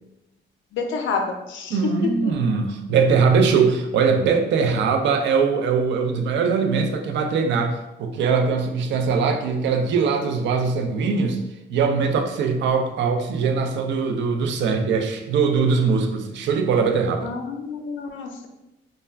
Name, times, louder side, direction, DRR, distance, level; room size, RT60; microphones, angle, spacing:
voice 1, 0.7-2.3 17.2-18.5, left 5 dB, 75° left, 4 dB, 0.5 m, -28 dB
voice 2, 1.7-11.4 11.7-17.3, right 5 dB, 65° right, 4 dB, 0.4 m, -21 dB
2.3 x 2.2 x 3.3 m, 0.95 s
cardioid pair, 90°, 20 cm